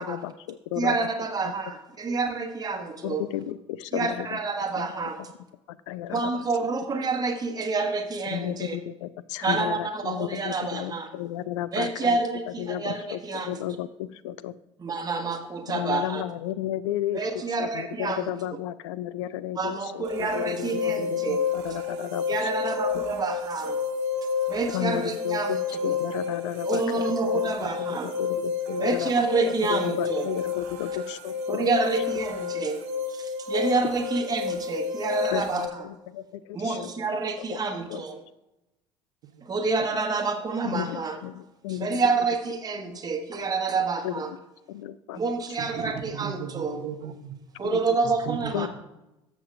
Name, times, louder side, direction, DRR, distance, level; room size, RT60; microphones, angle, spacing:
voice 1, 0.0-1.1 1.4-1.5 3.0-4.4 4.8-5.3 5.7-6.4 8.3-12.2 12.5-13.2 13.5-14.5 15.7-17.2 17.6-22.5 22.9-23.0 24.7-25.6 25.8-27.1 27.4-31.7 35.3-36.9 37.5-37.6 37.9-38.0 40.6-42.0 44.0-44.4 44.7-45.2 47.6-47.8 48.5-48.7, left 13 dB, 65° left, 18 dB, 0.4 m, -33 dB
voice 2, 0.8-3.2 3.9-5.2 6.1-8.8 9.4-11.1 11.7-13.6 14.8-16.2 17.1-18.2 19.6-21.4 22.3-23.8 24.5-25.5 25.8-25.9 26.7-28.1 28.8-30.3 31.5-32.8 33.1-35.8 36.5-38.2 39.4-41.2 41.8-44.3 45.1-46.8 47.6-48.7, right 4 dB, 25° right, 4 dB, 1.2 m, -28 dB
sound 1, 20.0-35.7, left 6 dB, 65° right, 1.3 m, -30 dB
voice 3, 45.6-47.4 48.3-48.7, right 9 dB, 50° right, 10 dB, 0.8 m, -36 dB
14.0 x 7.1 x 2.4 m, 0.94 s
figure-of-eight pair, 60°, 16 cm